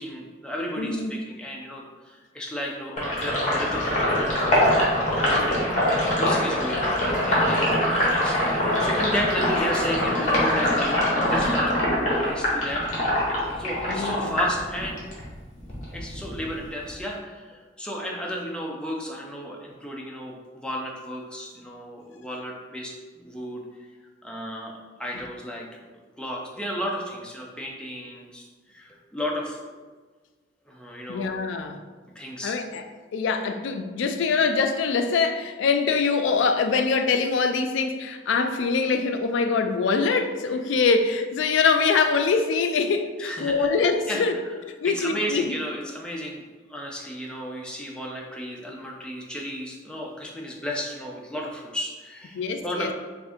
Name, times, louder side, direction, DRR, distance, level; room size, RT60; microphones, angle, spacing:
voice 1, 0.0-4.7 5.2-5.6 6.1-7.8 8.1-12.9 13.6-15.0 15.9-23.6 24.2-25.7 26.2-29.8 30.7-31.4 32.2-32.6 43.2-43.7 44.1-44.2 44.8-46.4 46.7-52.9, equal, 5° left, -1 dB, 0.4 m, -33 dB
voice 2, 0.8-1.1 13.9-14.3 31.1-31.8 32.4-32.8 33.1-44.4 44.7-45.5 52.3-52.9, left 4 dB, 90° left, 7 dB, 0.3 m, -24 dB
Sink (filling or washing), 3.0-15.2 15.6-17.0, left 1 dB, 40° left, 0.9 m, -23 dB
3.5 x 2.5 x 3.5 m, 1.4 s
head